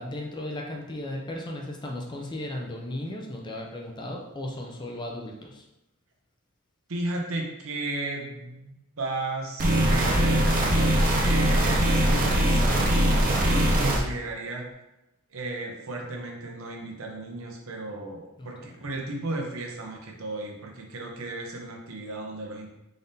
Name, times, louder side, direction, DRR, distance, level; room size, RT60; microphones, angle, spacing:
voice 1, 0.0-5.6 18.4-18.5, left 1 dB, 20° left, 0 dB, 0.4 m, -35 dB
voice 2, 6.9-10.5 11.1-14.7 15.3-22.7, right 2 dB, 70° right, 0 dB, 0.8 m, -34 dB
sound 1, 9.6-14.0, right 1 dB, 40° right, 0.6 m, -21 dB
3.9 x 3.4 x 2.7 m, 0.92 s
head